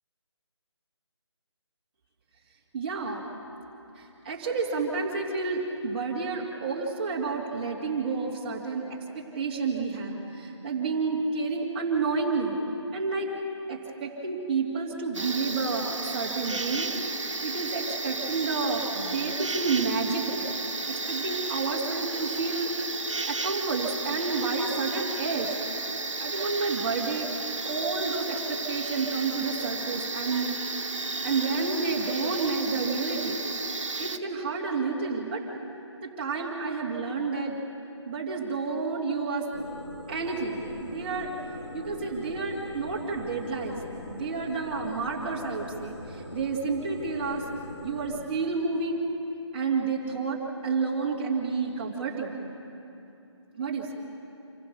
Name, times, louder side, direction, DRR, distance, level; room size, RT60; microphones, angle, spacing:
voice 1, 2.7-3.3 3.9-12.6 12.9-13.3 13.7-22.7 23.3-25.5 26.2-27.3 27.6-33.4 34.0-35.4 36.0-37.6 38.0-39.5 40.1-41.3 41.7-43.8 44.0-47.4 47.8-49.0 49.5-52.4 53.5-53.9, right 4 dB, 20° right, -4 dB, 3.0 m, -30 dB
sound 1, 15.1-34.2, right 3 dB, 80° right, 1.6 m, -33 dB
sound 2, 39.5-48.2, left 2 dB, 80° left, 3.6 m, -42 dB
27.5 x 15.5 x 7.2 m, 2.9 s
figure-of-eight pair, 170°, 15 cm